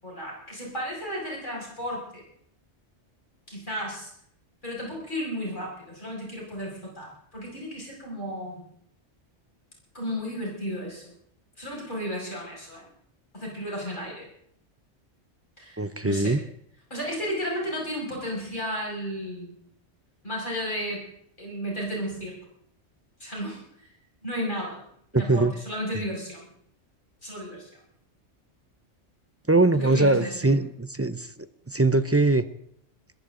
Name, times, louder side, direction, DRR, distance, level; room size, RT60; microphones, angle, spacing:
voice 1, 0.0-2.2 3.5-4.1 4.6-8.7 9.9-11.1 11.6-12.9 13.3-14.3 15.6-16.4 16.9-19.5 20.2-21.0 21.4-22.4 23.2-23.9 24.2-24.8 25.2-26.5 27.2-27.7 29.7-30.5, equal, 45° left, -3 dB, 6.4 m, -33 dB
voice 2, 15.8-16.4 25.1-25.5 29.5-32.4, right 2 dB, 20° right, 13 dB, 0.5 m, -22 dB
21.0 x 15.5 x 3.8 m, 0.69 s
omnidirectional pair, 1.2 m